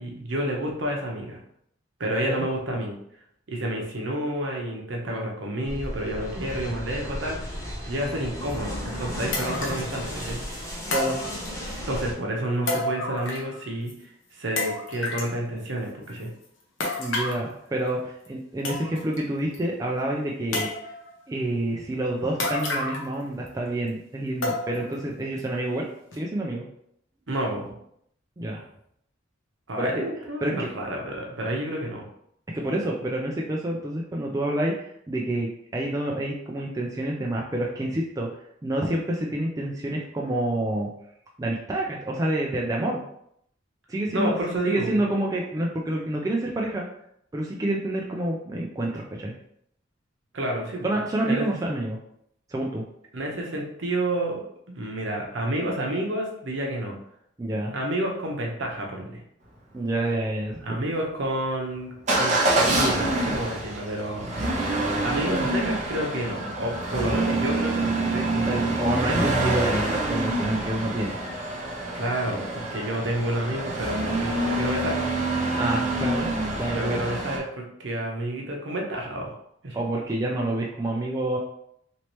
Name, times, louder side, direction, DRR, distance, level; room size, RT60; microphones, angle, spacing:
voice 1, 0.0-1.4 2.0-3.0 3.5-7.5 7.8-10.4 11.9-13.9 14.3-16.3 27.3-27.6 29.7-32.0 44.1-44.9 50.3-50.9 51.2-51.8 53.1-54.4 54.8-57.0 57.7-59.2 60.6-64.3 65.0-68.7 71.9-75.2 76.6-79.3 79.6-79.8, right 1 dB, 70° right, 0 dB, 0.8 m, -29 dB
sound 1, 5.6-12.1, left 1 dB, 15° left, 0.7 m, -34 dB
sound 2, 8.5-8.6 9.3-9.9 10.9-11.8 12.7-13.6 13.9-14.0 14.6-15.3 16.8-17.5 18.3-18.4 18.6-19.2 19.5-19.6 20.5-21.1 22.4-23.2 23.5-23.6 24.4-24.9 25.4-25.5 26.1-26.2, left 2 dB, 80° left, 0.8 m, -30 dB
voice 2, 17.0-20.7 21.3-25.9 26.1-26.7 28.4-28.6 29.8-30.0 30.4-30.7 32.5-38.3 38.6-40.9 41.4-43.0 43.9-44.4 44.6-46.8 47.3-49.3 50.8-52.0 52.5-52.8 57.4-57.7 59.7-60.8 68.5-71.2 75.5-76.3 76.6-77.0 79.7-81.4, right 1 dB, 15° right, -1 dB, 0.3 m, -28 dB
Motor vehicle (road) / Engine starting / Accelerating revving vroom, 62.1-77.4, right 2 dB, 35° right, 0.8 m, -26 dB
3.1 x 2.9 x 3.0 m, 0.72 s
head